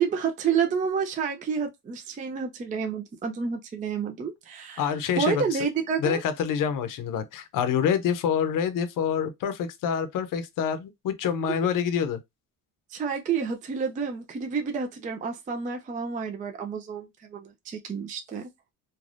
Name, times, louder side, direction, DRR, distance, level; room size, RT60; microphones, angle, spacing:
voice 1, 0.0-4.9 5.2-6.2 12.9-18.5, right 6 dB, 20° right, 0.4 m, -29 dB
voice 2, 4.8-5.7 6.0-12.2, left 7 dB, 55° left, 0.6 m, -27 dB
3.3 x 2.3 x 2.5 m
cardioid pair, 135°, 39 cm